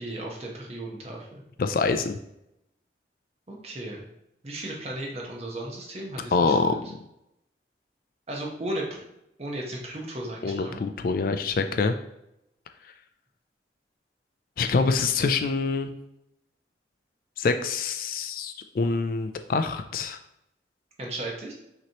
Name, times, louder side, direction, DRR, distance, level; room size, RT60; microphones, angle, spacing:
voice 1, 0.0-1.4 3.5-4.0 4.4-6.8 8.3-9.0 9.4-10.8 21.0-21.5, right 1 dB, 35° right, -1 dB, 1.0 m, -35 dB
voice 2, 1.6-2.2 6.3-6.8 10.4-11.9 14.6-15.9 17.4-20.2, left 4 dB, 50° left, 8 dB, 0.3 m, -25 dB
5.9 x 3.0 x 2.9 m, 0.84 s
head